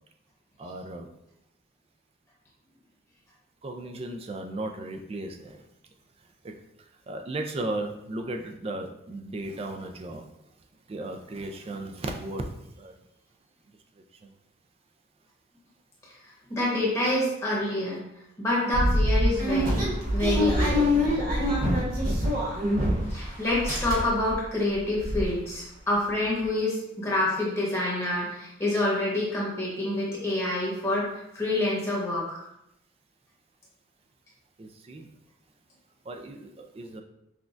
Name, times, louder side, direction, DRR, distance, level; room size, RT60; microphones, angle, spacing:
voice 1, 0.6-1.1 3.6-5.5 7.1-10.2 10.9-12.4 12.8-12.9 34.6-35.1 36.1-36.5 36.8-37.0, right 2 dB, 30° right, 4 dB, 0.3 m, -35 dB
voice 2, 16.5-18.0 18.4-19.8 20.1-20.9 23.1-31.1 31.3-32.4, left 1 dB, 15° left, -6 dB, 1.1 m, -27 dB
sound 1, 18.7-23.2 23.5-24.3 24.7-24.8 25.0-25.2, equal, 45° right, 1.0 m, -24 dB
5.9 x 2.2 x 2.5 m, 0.82 s
head